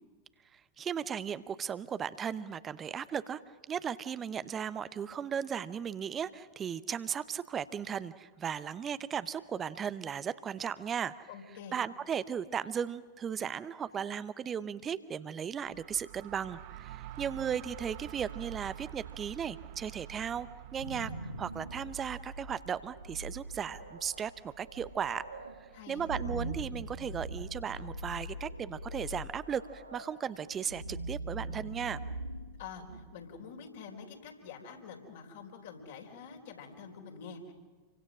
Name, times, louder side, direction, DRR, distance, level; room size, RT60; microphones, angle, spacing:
voice 1, 0.5-3.4 3.7-11.3 11.7-21.1 21.4-25.2 25.9-32.0, right 8 dB, 25° right, 15 dB, 0.9 m, -36 dB
voice 2, 11.3-11.7 25.7-26.1 32.6-37.5, left 6 dB, 55° left, 2 dB, 4.3 m, -47 dB
sound 1, 15.6-27.3, right 13 dB, 50° right, 0.9 m, -49 dB
sound 2, 20.5-33.4, right 1 dB, 80° right, 1.5 m, -42 dB
28.5 x 24.0 x 6.3 m, 1.4 s
figure-of-eight pair, 90°, 0 cm